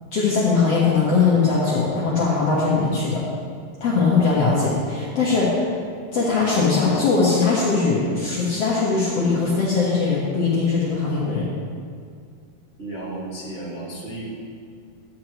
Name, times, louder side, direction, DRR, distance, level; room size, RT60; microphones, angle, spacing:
voice 1, 0.1-3.2 3.8-5.7 6.1-11.5, left 4 dB, 65° left, -6 dB, 1.5 m, -20 dB
voice 2, 12.8-14.3, right 2 dB, 50° right, -10 dB, 0.7 m, -33 dB
12.0 x 8.9 x 2.9 m, 2.2 s
omnidirectional pair, 4.4 m